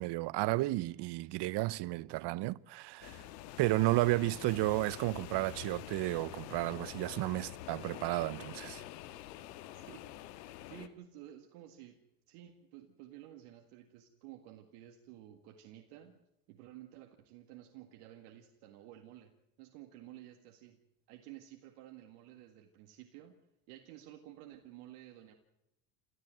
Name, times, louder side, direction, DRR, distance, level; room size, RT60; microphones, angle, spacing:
voice 1, 0.0-3.2 3.6-8.6, right 19 dB, 55° right, 0.8 m, -32 dB
sound 1, 3.0-10.9, left 14 dB, 85° left, 1.4 m, -47 dB
voice 2, 9.7-10.0 10.7-12.0 12.3-16.2 16.5-19.3 19.6-20.8 21.1-23.4 23.7-25.3, right 12 dB, 80° right, 2.0 m, -53 dB
28.0 x 14.0 x 7.7 m
supercardioid pair, 85°, 48 cm